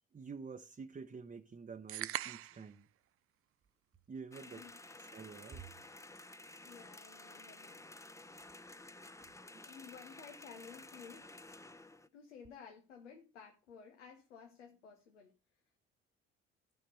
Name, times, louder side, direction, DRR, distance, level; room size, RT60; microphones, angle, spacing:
voice 1, 0.1-2.9 4.1-4.7 4.9-5.7 9.2-9.3 9.5-9.6, right 5 dB, 25° right, 0.8 m, -49 dB
sound 1, 1.9-2.7, right 13 dB, 40° right, 0.4 m, -40 dB
sound 2, 4.3-12.1, left 2 dB, 10° left, 0.7 m, -53 dB
voice 2, 4.4-4.8 6.6-7.8 9.6-11.3 12.1-15.3, left 6 dB, 90° left, 1.2 m, -54 dB
12.5 x 5.7 x 5.5 m
hypercardioid pair, 50°, 35 cm